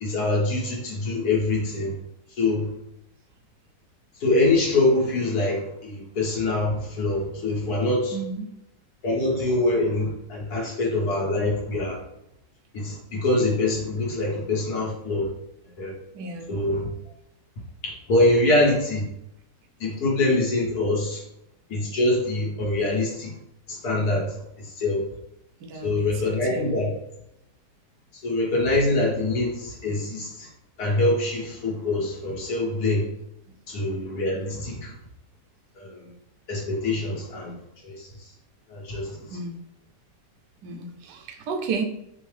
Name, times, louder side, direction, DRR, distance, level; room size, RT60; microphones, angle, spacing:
voice 1, 0.0-1.9 2.4-2.7 4.2-8.1 9.0-12.0 12.7-15.3 15.8-15.9 16.5-16.9 17.8-19.0 19.8-21.2 21.7-23.3 23.7-25.0 25.8-26.9 28.2-30.5 30.8-33.0 33.7-34.9 35.8-36.0 36.5-37.6 37.8-38.1 38.7-39.2, left 2 dB, 65° left, -3 dB, 1.6 m, -24 dB
voice 2, 8.1-8.5 16.1-16.6 25.6-26.7 39.3-39.6 40.6-41.8, right 4 dB, 75° right, 3 dB, 1.2 m, -33 dB
4.5 x 2.7 x 3.2 m, 0.80 s
omnidirectional pair, 1.9 m